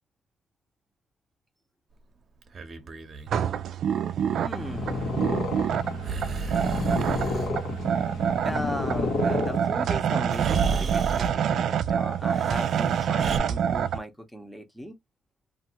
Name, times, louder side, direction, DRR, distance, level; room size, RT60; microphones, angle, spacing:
Breathing, 2.4-3.3 6.0-7.5 9.7-9.8 10.3-11.4 12.3-13.4, right 5 dB, 45° right, 0.8 m, -33 dB
sound 1, 3.3-14.0, right 8 dB, 70° right, 0.3 m, -27 dB
voice 1, 4.3-5.2 8.4-15.0, equal, 5° left, 0.8 m, -37 dB
Purr, 4.4-10.1, left 3 dB, 75° left, 1.1 m, -31 dB
2.8 x 2.6 x 2.8 m
cardioid pair, 90°, 0 cm